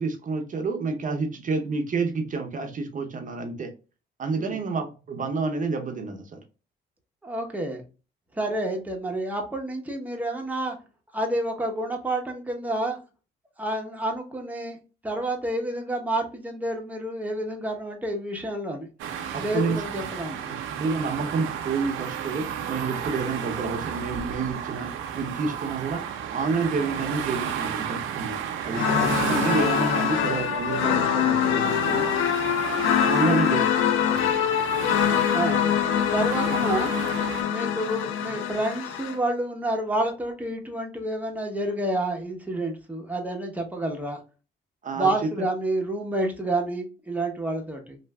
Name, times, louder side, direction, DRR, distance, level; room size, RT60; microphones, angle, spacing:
voice 1, 0.0-3.7 4.2-6.4 19.3-19.9 20.5-28.4 28.6-32.1 32.9-33.7 34.1-34.3 44.8-45.1, right 4 dB, 40° right, 0.7 m, -29 dB
voice 2, 7.2-7.8 8.3-10.8 11.1-13.0 13.6-14.8 15.0-18.9 19.4-20.4 33.3-33.6 35.3-35.7 36.1-36.9 37.5-44.2 45.0-48.0, right 1 dB, 10° right, 0.9 m, -29 dB
cars passing on busy avenue, 19.0-37.4, right 8 dB, 90° right, 0.5 m, -33 dB
sound 1, 28.7-39.2, left 9 dB, 90° left, 0.4 m, -24 dB
3.2 x 2.5 x 2.2 m
cardioid pair, 90°, 20 cm